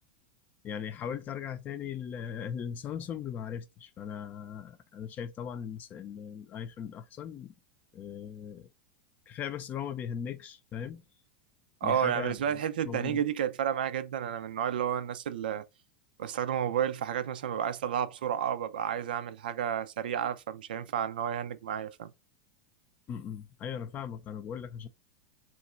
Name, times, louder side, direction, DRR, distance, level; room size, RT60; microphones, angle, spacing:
voice 1, 0.6-7.5 7.9-8.7 9.3-11.0 11.8-12.6 12.8-13.2 23.1-24.9, left 8 dB, 35° left, 0.5 m, -38 dB
voice 2, 11.8-15.6 16.2-22.1, right 9 dB, 80° right, 0.4 m, -31 dB
2.9 x 2.5 x 4.1 m
hypercardioid pair, 110°, 5 cm